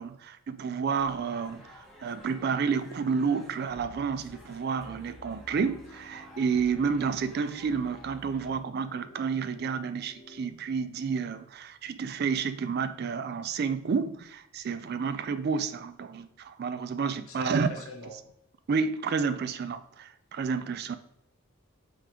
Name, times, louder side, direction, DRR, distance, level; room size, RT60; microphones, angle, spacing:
voice 1, 0.0-17.7 18.7-20.9, right 5 dB, 50° right, 0.3 m, -30 dB
sound 1, 0.9-8.6, equal, ahead, 0.8 m, -51 dB
sound 2, 4.6-10.5, right 1 dB, 50° left, 0.9 m, -54 dB
voice 2, 17.3-18.3, left 2 dB, 75° left, 1.2 m, -42 dB
5.0 x 3.6 x 3.0 m
head